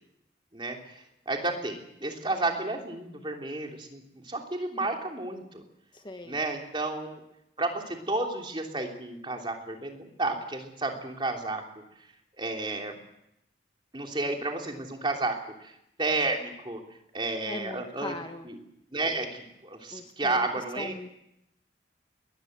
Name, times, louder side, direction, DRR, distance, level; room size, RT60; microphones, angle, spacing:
voice 1, 0.5-5.6 6.2-7.2 7.6-11.6 12.4-12.9 13.9-15.7 16.0-16.8 17.1-18.1 18.4-18.6 18.9-20.9, right 2 dB, 25° right, 2 dB, 3.2 m, -32 dB
voice 2, 5.9-6.4 17.5-18.5 19.9-21.1, left 1 dB, 25° left, 6 dB, 1.4 m, -40 dB
21.5 x 21.0 x 8.0 m, 0.83 s
head